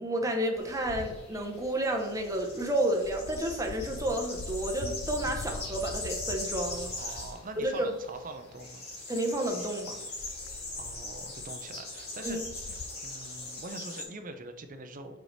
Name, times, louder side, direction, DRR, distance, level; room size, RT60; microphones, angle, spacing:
voice 1, 0.0-6.9 7.6-7.9 9.1-10.0 12.2-12.4, right 1 dB, 15° right, 2 dB, 0.9 m, -31 dB
Wind, 0.5-13.7, left 3 dB, 80° left, 0.4 m, -45 dB
sound 1, 0.6-14.0, left 2 dB, 55° left, 2.1 m, -41 dB
voice 2, 6.9-8.9 10.8-15.2, right 2 dB, 40° right, 7 dB, 0.7 m, -44 dB
4.9 x 4.7 x 4.1 m, 1.1 s
head